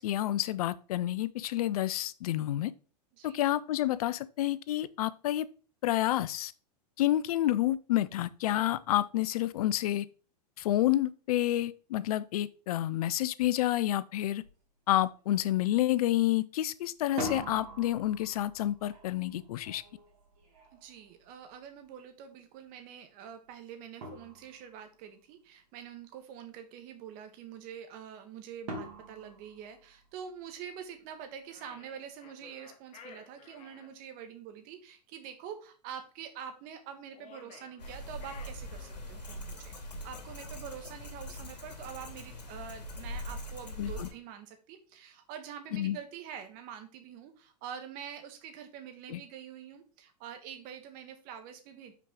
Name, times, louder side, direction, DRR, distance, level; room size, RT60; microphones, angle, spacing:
voice 1, 0.0-2.7 3.2-5.5 5.8-6.5 7.0-10.1 10.6-14.4 14.9-19.8 43.8-44.1 45.7-46.0 49.1-49.2, left 14 dB, 60° left, 0.5 m, -29 dB
sound 1, 14.4-14.6 15.0-15.5 17.0-21.8 23.5-23.6 24.0-24.9 28.7-30.4, right 1 dB, 60° right, 2.5 m, -43 dB
voice 2, 20.7-39.8 40.0-51.9, right 8 dB, 40° right, 1.4 m, -46 dB
sound 2, 31.5-33.9 37.1-39.2, left 5 dB, 30° left, 1.3 m, -54 dB
sound 3, 37.8-44.1, left 1 dB, 85° left, 2.6 m, -42 dB
5.7 x 4.7 x 3.8 m
hypercardioid pair, 105°, 21 cm